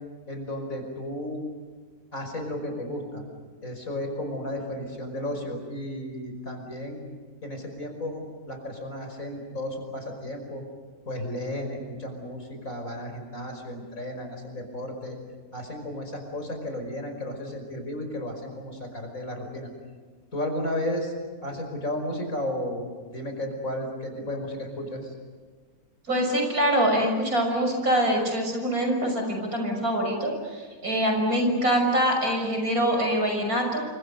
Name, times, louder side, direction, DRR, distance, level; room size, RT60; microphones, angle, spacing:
voice 1, 0.3-1.4 2.1-3.2 3.6-7.0 7.4-10.6 11.1-15.2 15.5-19.7 20.3-21.1 21.4-25.1, left 1 dB, 70° left, 4 dB, 5.7 m, -33 dB
voice 2, 26.1-33.8, equal, 85° right, 3 dB, 6.8 m, -24 dB
28.0 x 25.0 x 6.8 m, 1.5 s
omnidirectional pair, 1.5 m